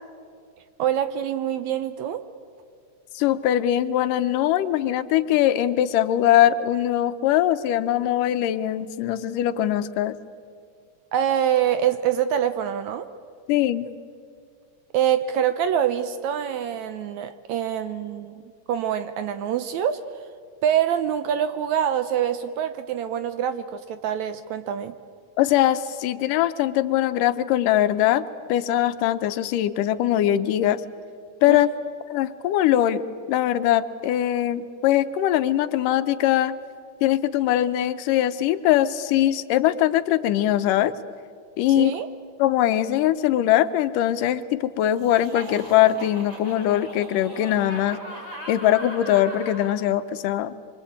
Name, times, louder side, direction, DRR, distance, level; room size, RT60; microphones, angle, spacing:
voice 1, 0.8-2.2 11.1-13.1 14.9-18.4 18.7-20.0 20.6-25.0 31.5-31.7 41.8-42.1, right 9 dB, 70° right, 11 dB, 1.8 m, -25 dB
voice 2, 3.2-10.2 13.5-13.9 25.4-28.2 28.5-30.8 31.4-31.7 32.1-33.0 33.3-36.5 37.0-41.0 41.6-41.9 42.4-48.0 48.5-50.5, left 12 dB, 80° left, 12 dB, 2.4 m, -21 dB
Laughter, 45.0-49.8, equal, 25° right, 4.6 m, -39 dB
26.0 x 24.5 x 8.6 m, 2.2 s
omnidirectional pair, 3.8 m